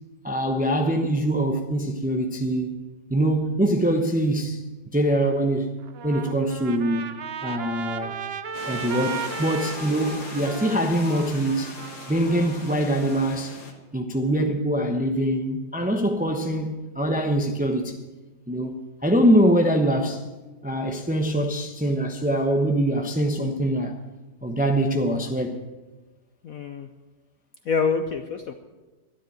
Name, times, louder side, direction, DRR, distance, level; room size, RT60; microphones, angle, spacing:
voice 1, 0.2-2.8 3.1-4.6 4.9-5.7 6.0-7.1 7.4-8.2 8.7-11.7 12.1-13.6 13.9-18.0 18.5-18.8 19.0-20.2 20.6-24.0 24.4-25.6, right 1 dB, 10° right, 0.4 m, -23 dB
Trumpet, 5.8-13.2, right 7 dB, 65° right, 0.6 m, -36 dB
sound 1, 8.5-13.7, left 3 dB, 85° left, 2.6 m, -39 dB
voice 2, 26.4-26.9 27.7-28.5, left 5 dB, 60° left, 1.0 m, -26 dB
13.0 x 10.5 x 9.1 m
omnidirectional pair, 2.0 m